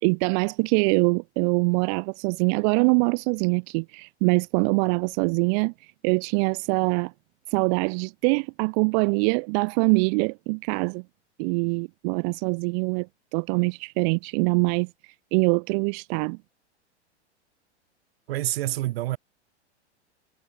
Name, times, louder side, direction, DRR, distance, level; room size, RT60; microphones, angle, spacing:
voice 1, 0.0-5.7 6.0-7.1 7.5-11.0 11.4-13.1 13.3-14.9 15.3-16.4, right 37 dB, 40° right, 0.7 m, -23 dB
voice 2, 18.3-19.2, right 16 dB, 55° right, 1.4 m, -27 dB
figure-of-eight pair, 100°, 35 cm